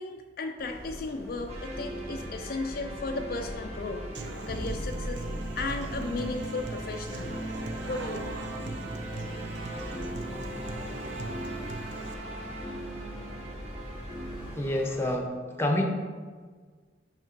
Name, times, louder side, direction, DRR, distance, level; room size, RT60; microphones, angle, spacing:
voice 1, 0.0-4.1 4.5-5.2 5.6-7.5 7.8-8.4, left 3 dB, 50° left, 4 dB, 0.4 m, -35 dB
sound 1, 0.6-15.2, equal, 15° right, 1.7 m, -45 dB
sound 2, 1.5-14.6, right 1 dB, 35° right, 1.0 m, -38 dB
Human voice / Acoustic guitar, 4.1-12.1, right 3 dB, 75° right, 0.6 m, -42 dB
voice 2, 14.6-15.3 15.6-15.8, left 1 dB, 15° left, 2 dB, 0.8 m, -27 dB
6.4 x 5.9 x 4.5 m, 1.5 s
head